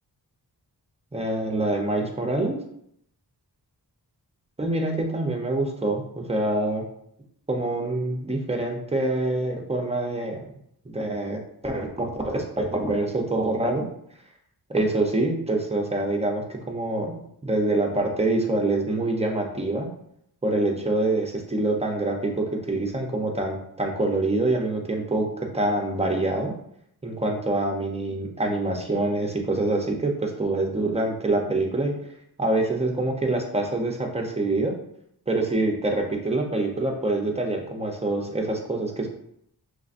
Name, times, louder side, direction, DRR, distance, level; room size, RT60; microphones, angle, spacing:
voice 1, 1.1-2.6 4.6-6.8 7.5-10.4 10.8-13.9 14.7-19.9 20.4-25.3 25.5-26.5 27.0-31.9 32.4-34.7 35.3-39.1, right 2 dB, 15° right, 1 dB, 0.6 m, -25 dB
5.3 x 3.3 x 2.5 m, 0.71 s
wide cardioid pair, 150°, 40 cm